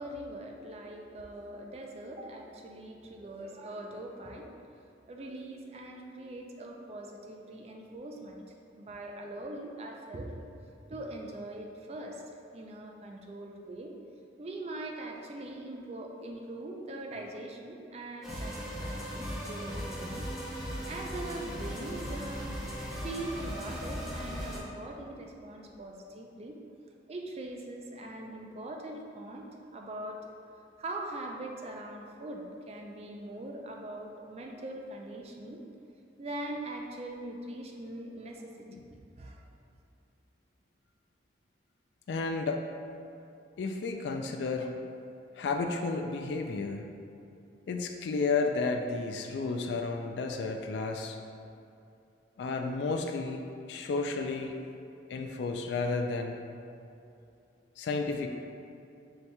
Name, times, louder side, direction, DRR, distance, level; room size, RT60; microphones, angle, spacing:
voice 1, 0.0-8.4 8.8-10.4 10.9-13.9 14.4-20.3 20.9-22.5 23.0-26.6 27.1-30.3 30.8-35.6 36.2-39.5, right 1 dB, 35° right, 1 dB, 0.4 m, -42 dB
sound 1, 18.2-24.6, equal, ahead, 0.8 m, -37 dB
voice 2, 42.1-42.6 43.6-44.7 45.4-46.9 47.7-51.2 52.4-53.4 53.7-54.5 55.1-56.4 57.8-58.3, left 4 dB, 75° left, 3 dB, 0.3 m, -32 dB
7.7 x 2.8 x 2.2 m, 2.7 s
head